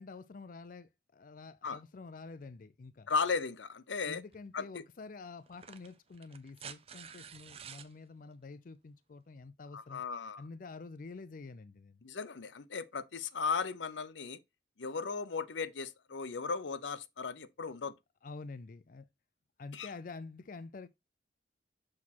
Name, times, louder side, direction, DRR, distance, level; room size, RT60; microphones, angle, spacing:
voice 1, 0.0-3.1 4.0-10.0 10.4-12.0 18.2-19.1 19.6-20.9, left 3 dB, 45° left, 0.4 m, -48 dB
voice 2, 3.1-4.2 4.5-4.8 9.7-10.4 12.0-14.4 14.8-17.9 19.7-19.9, left 5 dB, 80° left, 0.7 m, -36 dB
sound 1, 4.3-4.5 5.5-7.9 9.4-9.5, right 7 dB, 35° right, 0.6 m, -50 dB
6.5 x 4.2 x 4.1 m
head